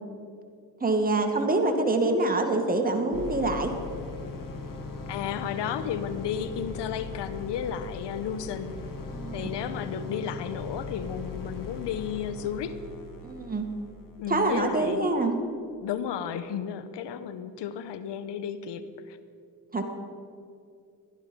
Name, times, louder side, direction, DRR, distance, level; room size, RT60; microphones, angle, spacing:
voice 1, 0.8-3.7 9.1-9.5 13.2-13.7 14.3-15.3 19.7-19.8, right 2 dB, 20° right, 4 dB, 2.1 m, -25 dB
sound 1, 3.1-15.0, left 4 dB, 50° left, 2.2 m, -39 dB
voice 2, 5.1-8.7 9.3-12.7 14.2-15.1 15.8-19.2, left 8 dB, 70° left, 12 dB, 1.1 m, -33 dB
17.0 x 11.5 x 5.4 m, 2.4 s
supercardioid pair, 65°, 43 cm